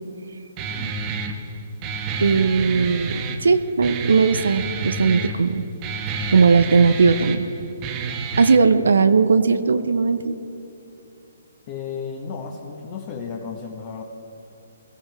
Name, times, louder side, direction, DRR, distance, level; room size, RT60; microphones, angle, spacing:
Guitar, 0.6-8.6, right 4 dB, 25° right, 1.3 m, -29 dB
voice 1, 2.2-5.7 6.3-7.5 8.4-10.3, right 5 dB, 70° right, 9 dB, 0.8 m, -18 dB
voice 2, 11.7-14.0, left 6 dB, 35° left, -1 dB, 1.4 m, -33 dB
21.5 x 15.5 x 3.6 m, 2.8 s
figure-of-eight pair, 140°, 0 cm